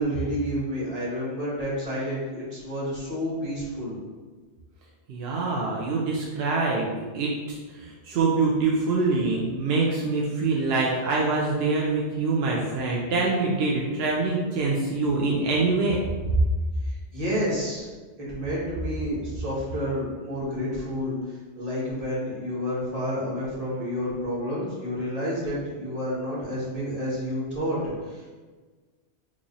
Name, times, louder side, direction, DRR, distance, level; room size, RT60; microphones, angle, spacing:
voice 1, 0.0-4.0 16.8-17.9 18.2-28.4, equal, 35° right, -7 dB, 1.2 m, -30 dB
voice 2, 5.1-16.0, right 3 dB, 65° right, -3 dB, 0.8 m, -25 dB
3.2 x 2.4 x 3.9 m, 1.4 s
omnidirectional pair, 1.2 m